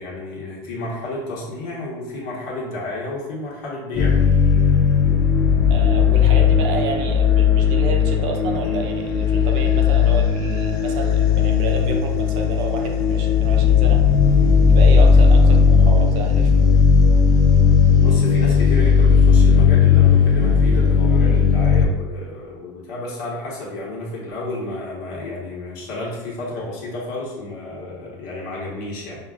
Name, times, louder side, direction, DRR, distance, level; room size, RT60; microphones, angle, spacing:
voice 1, 0.0-4.2 17.9-29.2, left 2 dB, 65° left, -5 dB, 1.3 m, -31 dB
sound 1, 3.9-21.8, left 6 dB, 40° left, 0.4 m, -16 dB
voice 2, 5.7-14.0 14.6-16.5 21.2-21.5, right 3 dB, 60° right, 3 dB, 0.6 m, -30 dB
5.2 x 2.3 x 2.4 m, 1.1 s
cardioid pair, 150°, 10 cm